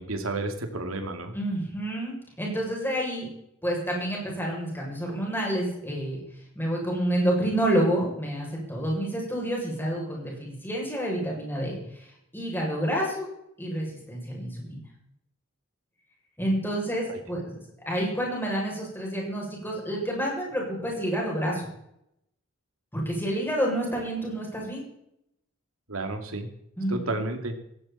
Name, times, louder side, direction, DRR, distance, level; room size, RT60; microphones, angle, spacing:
voice 1, 0.0-1.3 17.1-17.2 25.9-26.5 26.9-27.6, right 2 dB, 80° right, 5 dB, 2.7 m, -31 dB
voice 2, 1.3-3.3 3.6-6.2 6.6-12.0 12.3-13.3 13.6-14.8 16.4-17.6 17.9-21.6 22.9-24.8 26.8-27.2, right 1 dB, 10° left, -2 dB, 7.2 m, -29 dB
17.5 x 16.0 x 4.4 m, 0.77 s
head